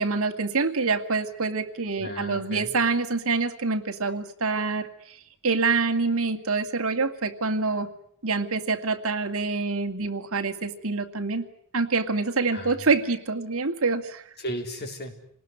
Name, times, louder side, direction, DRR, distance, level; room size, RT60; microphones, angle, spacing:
voice 1, 0.0-5.2 5.4-7.9 8.2-11.4 11.7-14.2, right 4 dB, 70° right, 7 dB, 2.1 m, -26 dB
voice 2, 2.0-2.7 12.5-12.9 14.4-15.1, equal, 50° left, 4 dB, 4.3 m, -35 dB
28.0 x 19.5 x 9.6 m, 0.69 s
head